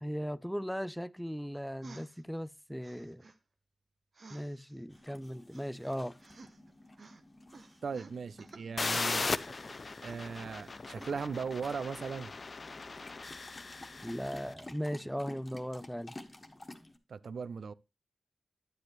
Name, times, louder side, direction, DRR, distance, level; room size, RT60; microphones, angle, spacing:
voice 1, 0.0-3.2 4.3-6.2 14.0-16.1, equal, ahead, 0.4 m, -38 dB
sound 1, 1.8-2.2 2.8-3.4 4.1-5.0 5.5-6.7 7.0-7.2 7.5-8.6 9.0-10.6 11.0-11.1, right 3 dB, 55° right, 1.1 m, -54 dB
sound 2, 4.9-17.0, left 1 dB, 30° left, 1.4 m, -53 dB
voice 2, 7.8-9.3 10.0-12.3 17.1-17.7, right 5 dB, 75° right, 0.5 m, -38 dB
sound 3, 8.8-14.4, left 3 dB, 50° left, 0.5 m, -38 dB
10.5 x 7.9 x 3.0 m
cardioid pair, 60°, 0 cm